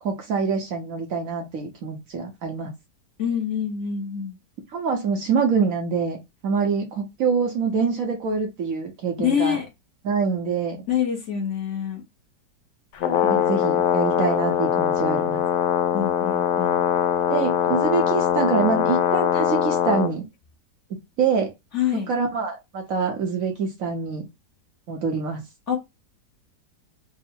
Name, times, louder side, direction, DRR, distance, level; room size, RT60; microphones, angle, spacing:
voice 1, 0.0-2.7 4.7-6.2 6.4-9.6 10.0-10.9 13.2-15.4 17.3-20.3 20.9-21.5 22.1-24.3 24.9-25.4, right 5 dB, 60° right, 1.0 m, -25 dB
voice 2, 3.2-4.4 9.2-9.7 10.9-12.0 15.9-16.8 21.7-22.1 25.7-25.8, left 8 dB, 50° left, 1.1 m, -26 dB
Brass instrument, 12.9-20.1, left 9 dB, 75° left, 0.6 m, -22 dB
3.7 x 2.0 x 4.2 m
omnidirectional pair, 1.8 m